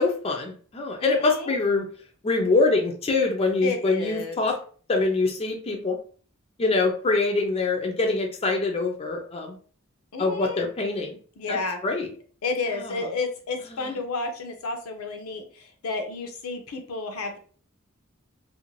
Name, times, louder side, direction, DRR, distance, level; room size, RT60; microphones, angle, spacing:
voice 1, 0.0-1.9 2.2-4.6 4.9-6.0 6.6-9.6 10.2-11.2 11.5-12.1 12.8-12.9 13.7-14.0, left 3 dB, 30° left, 2 dB, 0.4 m, -24 dB
voice 2, 1.0-1.6 3.6-4.4 10.1-10.7 11.4-11.8 12.4-17.4, left 3 dB, 85° left, 5 dB, 0.6 m, -31 dB
2.5 x 2.0 x 3.0 m, 0.42 s
head